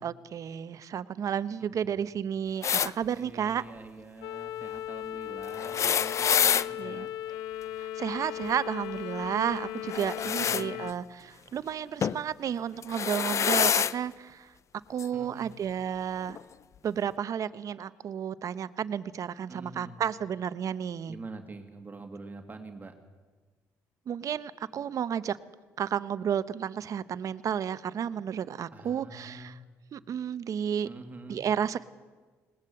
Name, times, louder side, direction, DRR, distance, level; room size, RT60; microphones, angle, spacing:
voice 1, 0.0-3.6 6.8-7.1 7.8-14.5 14.9-16.4 16.8-21.2 24.1-25.4 25.8-29.6 29.9-30.9 31.3-31.8, right 8 dB, 55° right, 14 dB, 0.8 m, -32 dB
voice 2, 1.6-2.0 3.1-7.1 10.2-10.9 15.1-15.5 19.5-20.0 21.1-22.9 28.7-29.6 30.8-31.4, right 3 dB, 25° right, 5 dB, 2.2 m, -45 dB
sound 1, 2.6-2.9 5.5-6.7 9.9-10.6 12.0-12.2 12.8-13.9 15.0-15.1 16.3-16.4, left 8 dB, 50° left, 0.5 m, -26 dB
sound 2, 4.2-10.9, left 12 dB, 85° left, 0.7 m, -37 dB
20.0 x 19.0 x 7.8 m, 1.4 s
supercardioid pair, 75°, 7 cm